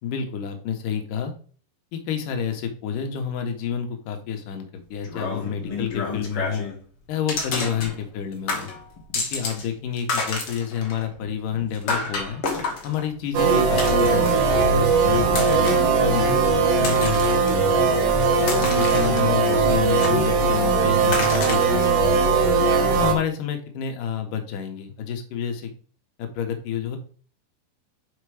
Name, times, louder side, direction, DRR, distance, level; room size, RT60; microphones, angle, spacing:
voice 1, 0.0-1.3 1.9-6.7 7.1-8.7 9.1-12.4 12.8-17.8 18.4-22.4 22.9-25.7 26.2-27.0, left 8 dB, 70° left, 5 dB, 2.0 m, -29 dB
sound 1, 5.0-6.8 7.3-8.2 8.5-9.7 9.9-14.5 15.3-15.9 16.5-17.5 18.0-19.5 20.0-20.6 21.1-21.9, left 4 dB, 85° left, 1.2 m, -30 dB
sound 2, 13.3-23.1, right 4 dB, 75° right, 1.9 m, -19 dB
8.0 x 4.6 x 4.9 m, 0.43 s
omnidirectional pair, 5.3 m